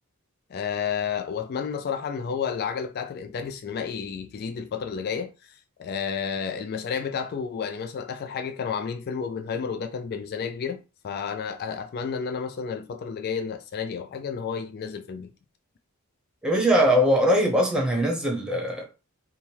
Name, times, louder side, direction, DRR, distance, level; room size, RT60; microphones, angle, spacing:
voice 1, 0.5-15.3, left 6 dB, 45° left, 0.3 m, -31 dB
voice 2, 16.4-18.8, equal, 5° right, 0.8 m, -21 dB
3.5 x 2.1 x 4.3 m
head